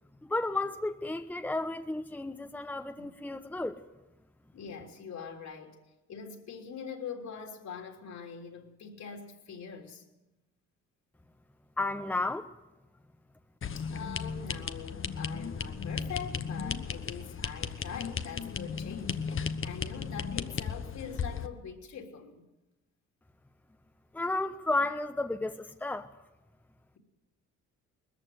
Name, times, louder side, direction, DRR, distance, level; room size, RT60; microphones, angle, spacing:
voice 1, 0.2-3.8 11.8-12.5 24.1-26.1, left 2 dB, 5° left, 1.0 m, -32 dB
voice 2, 4.5-5.8 6.1-10.0 13.8-22.5, left 6 dB, 65° left, 3.4 m, -43 dB
sound 1, 13.6-21.5, left 6 dB, 45° left, 1.2 m, -35 dB
20.0 x 14.5 x 9.4 m
cardioid pair, 90°, 30 cm